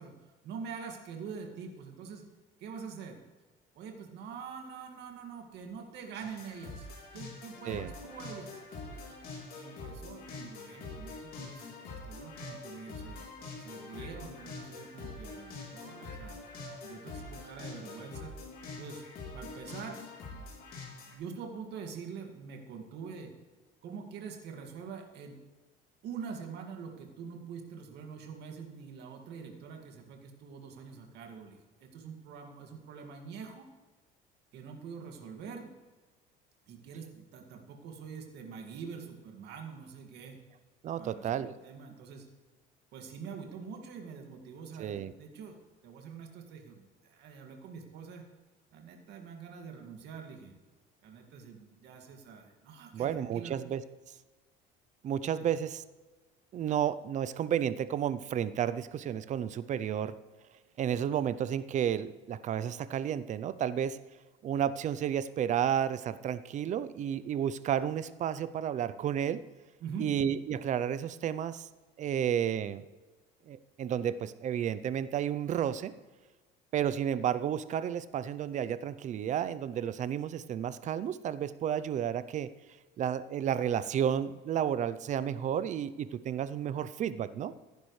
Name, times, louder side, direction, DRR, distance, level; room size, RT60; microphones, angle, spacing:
voice 1, 0.0-2.2 2.6-3.2 3.7-9.0 9.6-13.2 13.6-16.4 16.8-18.3 18.8-19.0 19.3-20.0 20.3-20.5 21.1-23.3 23.8-25.4 26.0-33.7 34.5-35.7 36.7-40.4 41.0-42.3 42.9-45.6 45.8-48.3 48.7-50.5 51.0-53.6 55.4-55.5 69.8-70.1, right 6 dB, 60° right, 3 dB, 2.2 m, -45 dB
sound 1, 6.2-21.2, left 3 dB, 50° left, 3.6 m, -45 dB
voice 2, 40.8-41.5 44.8-45.1 52.9-53.8 55.0-55.8 56.5-60.1 60.8-64.0 64.4-69.4 70.0-71.7 72.0-72.8 73.5-75.9 76.7-82.5 83.0-87.5, right 9 dB, 40° right, 15 dB, 0.6 m, -32 dB
15.5 x 10.5 x 3.3 m, 1.3 s
cardioid pair, 140°, 20 cm